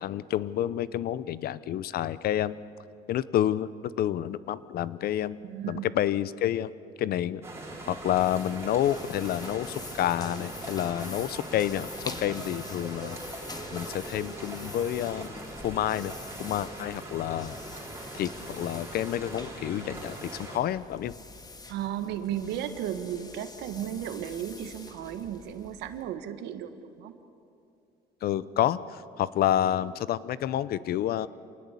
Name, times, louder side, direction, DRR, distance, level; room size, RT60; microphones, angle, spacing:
voice 1, 0.0-2.6 3.1-3.7 4.0-5.4 5.7-6.7 7.0-7.4 7.9-11.9 12.2-13.2 13.7-15.4 15.6-16.1 16.4-17.6 18.1-21.1 28.2-31.3, left 11 dB, 65° left, 17 dB, 0.7 m, -29 dB
voice 2, 5.4-5.9 21.7-27.1, right 10 dB, 90° right, 9 dB, 1.6 m, -35 dB
sound 1, 7.4-20.6, right 2 dB, 15° right, 4.1 m, -41 dB
sound 2, 7.7-26.1, left 3 dB, 25° left, 1.8 m, -46 dB
26.5 x 19.0 x 8.4 m, 2.6 s
cardioid pair, 110°, 17 cm